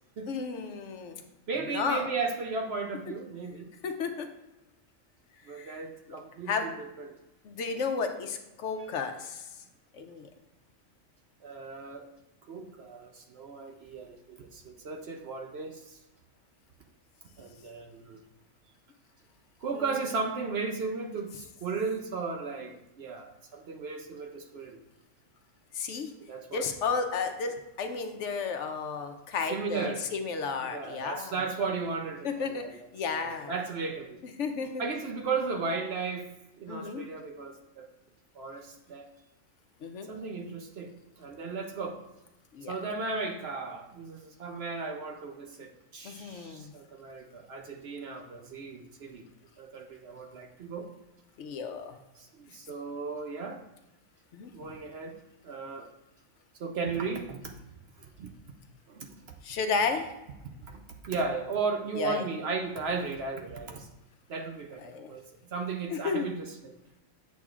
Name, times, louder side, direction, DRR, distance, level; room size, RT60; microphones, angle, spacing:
voice 1, 0.3-1.2 1.7-2.1 3.8-4.3 5.5-5.8 6.1-6.2 6.5-6.7 7.4-9.5 9.9-10.3 19.7-19.8 25.7-26.1 26.5-31.4 32.2-33.5 34.4-34.8 36.7-37.0 39.8-40.1 42.5-42.7 46.0-46.7 51.4-52.0 54.3-54.5 59.4-60.1 62.0-62.2 64.8-65.1 65.9-66.3, left 5 dB, 70° left, 6 dB, 0.9 m, -33 dB
voice 2, 1.5-3.7 5.5-7.1 11.4-12.1 12.5-16.0 17.4-18.2 19.6-24.8 26.3-26.7 29.5-30.0 30.6-32.7 33.1-34.2 34.8-36.3 36.6-37.9 38.3-39.1 40.1-42.0 42.7-49.2 49.6-50.9 52.2-53.6 54.5-55.1 55.4-55.9 56.6-57.5 58.0-58.3 58.9-59.3 60.7-63.9 64.3-66.8, right 4 dB, 60° right, 3 dB, 0.8 m, -35 dB
8.3 x 6.2 x 2.4 m, 0.96 s
omnidirectional pair, 1.4 m